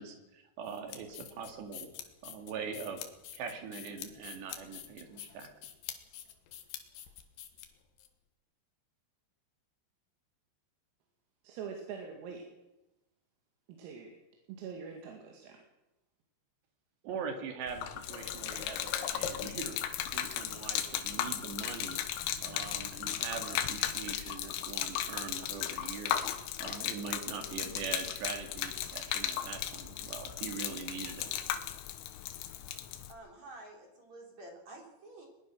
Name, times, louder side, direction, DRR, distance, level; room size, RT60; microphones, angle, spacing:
voice 1, 0.0-1.9 2.2-3.0 3.3-5.5 17.0-22.0 22.4-26.2 26.6-31.3, right 5 dB, 60° right, 5 dB, 4.2 m, -42 dB
sound 1, 0.7-8.1, left 10 dB, 65° left, 3.2 m, -47 dB
voice 2, 11.4-12.5 13.7-14.1 14.5-15.6, right 6 dB, 90° right, 1 dB, 4.9 m, -43 dB
Gurgling / Liquid, 17.7-33.1, left 11 dB, 85° left, 3.9 m, -36 dB
voice 3, 33.1-35.3, right 2 dB, 35° right, 1 dB, 4.8 m, -50 dB
21.0 x 21.0 x 6.2 m, 0.96 s
omnidirectional pair, 5.9 m